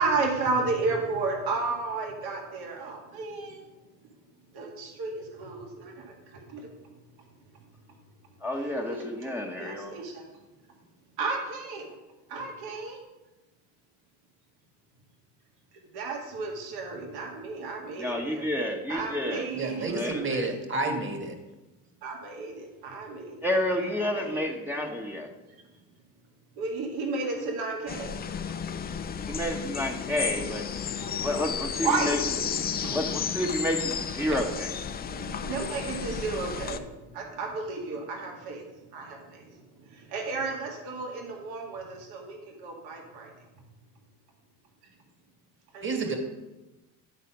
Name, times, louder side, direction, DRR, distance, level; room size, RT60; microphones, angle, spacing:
voice 1, 0.0-3.7 4.5-6.7 8.7-9.1 9.6-10.3 11.2-11.9 12.3-13.0 15.9-18.5 18.9-19.9 22.0-23.4 24.1-24.7 26.6-28.2 31.0-31.3 31.8-32.3 32.7-33.0 34.9-43.3 45.7-46.1, right 3 dB, 70° right, 0 dB, 2.0 m, -33 dB
voice 2, 8.4-9.9 18.0-19.4 19.8-20.5 23.4-25.3 29.3-30.7 31.2-32.2 32.9-34.7, left 1 dB, 5° right, -1 dB, 1.0 m, -30 dB
voice 3, 19.5-21.4 34.3-34.4 45.8-46.2, right 3 dB, 30° right, 4 dB, 1.7 m, -30 dB
sound 1, 27.9-36.8, left 7 dB, 25° left, 0.5 m, -33 dB
10.5 x 4.1 x 5.9 m, 1.1 s
cardioid pair, 110°, 38 cm